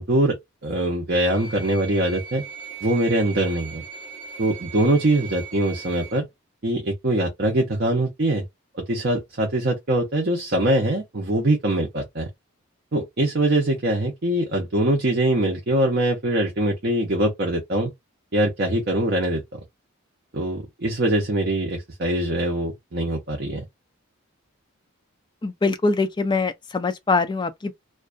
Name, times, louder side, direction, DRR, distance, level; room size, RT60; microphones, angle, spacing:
voice 1, 0.0-2.4 2.8-3.8 4.4-6.3 6.6-8.4 8.7-12.3 12.9-17.9 18.3-19.6 20.3-23.6, right 1 dB, 50° right, 0.6 m, -23 dB
sound 1, 1.1-6.2, right 6 dB, 25° right, 0.9 m, -39 dB
voice 2, 25.4-27.7, left 3 dB, 20° left, 0.3 m, -23 dB
2.5 x 2.2 x 2.3 m
head